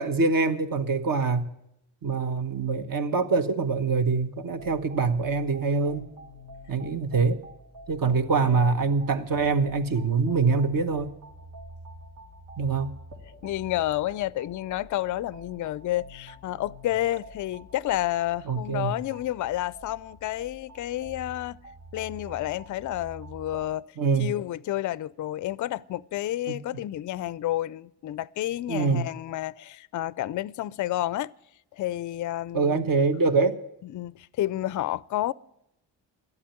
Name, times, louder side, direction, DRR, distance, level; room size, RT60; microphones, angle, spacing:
voice 1, 0.0-1.5 2.0-6.0 6.7-7.4 7.9-11.1 12.6-12.9 18.5-18.9 24.0-24.3 26.5-26.6 28.7-29.0 32.5-33.6, right 4 dB, 45° right, 1.3 m, -24 dB
sound 1, 4.5-23.7, equal, 75° right, 2.9 m, -47 dB
voice 2, 8.0-8.8 13.4-21.6 21.9-23.9 24.2-31.3 31.7-32.9 33.8-35.3, left 14 dB, 45° left, 0.4 m, -30 dB
12.0 x 8.5 x 8.9 m
supercardioid pair, 60°, 45 cm